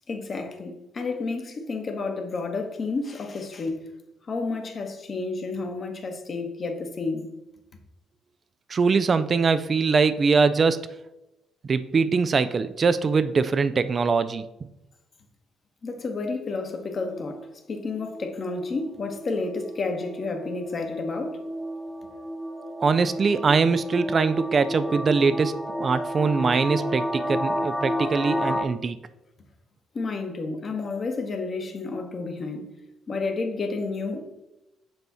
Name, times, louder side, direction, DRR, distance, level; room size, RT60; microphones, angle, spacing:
voice 1, 0.1-3.9 4.3-7.3 15.8-21.4 29.9-32.8 33.1-34.5, left 3 dB, 45° left, 1.1 m, -31 dB
voice 2, 8.7-10.9 11.7-14.4 22.8-29.0, right 5 dB, 40° right, 0.4 m, -22 dB
sound 1, 16.9-28.6, equal, 5° left, 0.7 m, -32 dB
7.0 x 3.3 x 4.1 m
hypercardioid pair, 45°, 0 cm